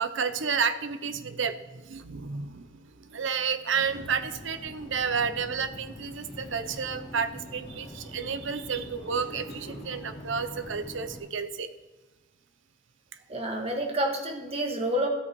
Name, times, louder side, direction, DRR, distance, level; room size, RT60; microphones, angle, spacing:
voice 1, 0.0-11.7, right 6 dB, 65° right, 10 dB, 0.7 m, -31 dB
sound 1, 3.8-11.2, equal, 35° left, 4.0 m, -43 dB
voice 2, 13.3-15.1, right 1 dB, 30° right, 2 dB, 1.5 m, -29 dB
13.0 x 8.3 x 4.6 m, 1.2 s
head